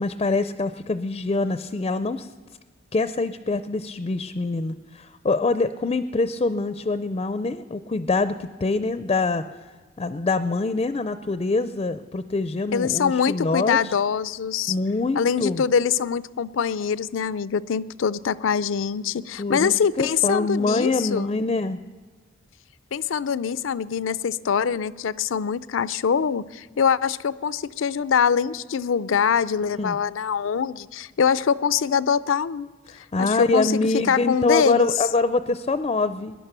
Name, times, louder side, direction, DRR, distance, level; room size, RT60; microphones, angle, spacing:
voice 1, 0.0-2.3 2.9-9.4 10.0-13.9 14.7-15.6 19.4-21.8 29.7-30.0 32.9-36.3, left 3 dB, 30° left, 12 dB, 0.4 m, -25 dB
voice 2, 12.7-14.7 15.2-21.3 22.9-32.7 33.2-34.9, left 7 dB, 90° left, 18 dB, 0.4 m, -24 dB
19.5 x 11.0 x 6.7 m, 1.4 s
head